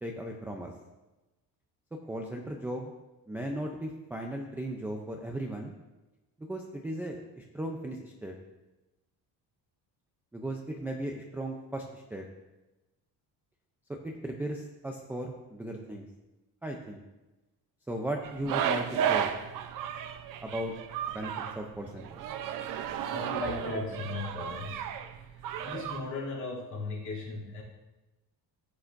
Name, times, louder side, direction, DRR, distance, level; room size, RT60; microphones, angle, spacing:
voice 1, 0.0-0.7 2.1-2.9 3.3-5.7 6.4-8.3 10.3-12.2 13.9-16.1 16.6-17.0 17.9-19.3 20.4-20.7 21.1-22.1, right 1 dB, 5° right, 0 dB, 0.4 m, -36 dB
sound 1, 18.2-26.0, right 9 dB, 50° right, 0.7 m, -33 dB
voice 2, 23.1-24.9 25.6-27.6, left 3 dB, 45° left, -5 dB, 2.8 m, -37 dB
14.5 x 8.3 x 2.6 m, 1.1 s
cardioid pair, 180°, 41 cm